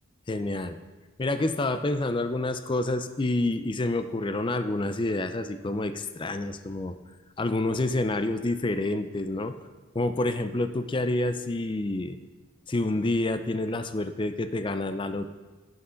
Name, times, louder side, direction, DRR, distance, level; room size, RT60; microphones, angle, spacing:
voice 1, 0.3-0.8 1.2-7.0 7.4-9.5 9.9-12.2 12.7-15.3, left 2 dB, 25° left, 10 dB, 0.4 m, -28 dB
11.5 x 8.0 x 3.9 m, 1.3 s
head